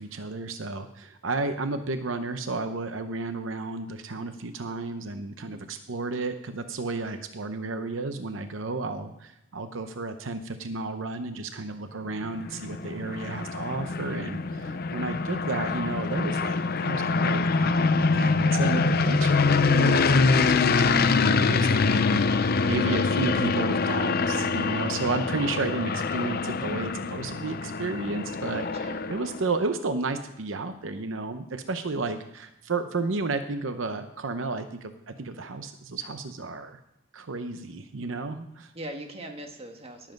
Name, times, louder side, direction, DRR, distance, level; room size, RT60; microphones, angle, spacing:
voice 1, 0.0-17.9 18.1-36.8 37.1-38.7, right 3 dB, 80° right, 8 dB, 0.8 m, -32 dB
sound 1, 12.3-29.4, left 4 dB, 50° left, 0.6 m, -25 dB
voice 2, 14.5-14.8 25.0-25.1 28.8-29.0 38.7-40.1, right 1 dB, 30° right, 4 dB, 1.6 m, -41 dB
18.5 x 7.5 x 5.3 m, 0.82 s
head